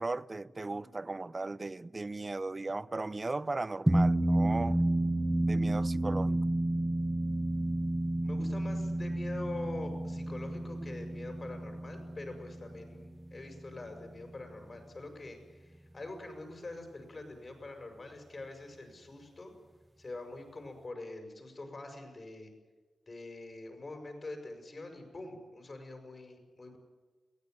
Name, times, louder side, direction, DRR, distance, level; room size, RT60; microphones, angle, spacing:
voice 1, 0.0-4.8 5.5-6.4, right 2 dB, 25° right, 0.7 m, -37 dB
sound 1, 3.9-14.5, right 1 dB, 10° right, 1.0 m, -31 dB
voice 2, 8.2-19.5 20.0-22.5 23.1-26.8, left 2 dB, 35° left, 6.8 m, -45 dB
22.5 x 18.5 x 9.6 m
wide cardioid pair, 115°, 0 cm